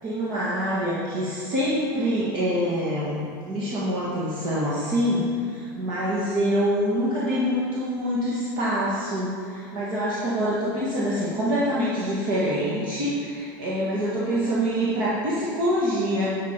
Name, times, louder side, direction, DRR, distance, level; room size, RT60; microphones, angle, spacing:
voice 1, 0.0-16.4, equal, 40° right, -7 dB, 1.6 m, -25 dB
10.5 x 6.1 x 4.5 m, 2.3 s
supercardioid pair, 165°, 11 cm